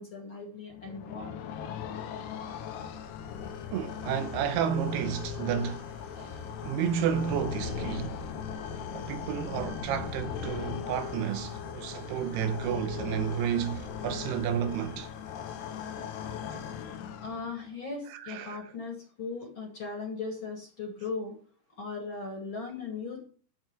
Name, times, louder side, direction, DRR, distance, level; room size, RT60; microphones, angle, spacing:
voice 1, 0.0-1.4 17.2-21.3 21.8-23.2, left 4 dB, 40° left, 2.2 m, -38 dB
sound 1, 0.7-17.7, left 7 dB, 85° left, 3.3 m, -38 dB
voice 2, 3.7-8.2 8.7-15.1 16.5-16.6 18.1-18.7, right 8 dB, 90° right, 2.8 m, -31 dB
12.0 x 4.7 x 7.6 m
omnidirectional pair, 4.6 m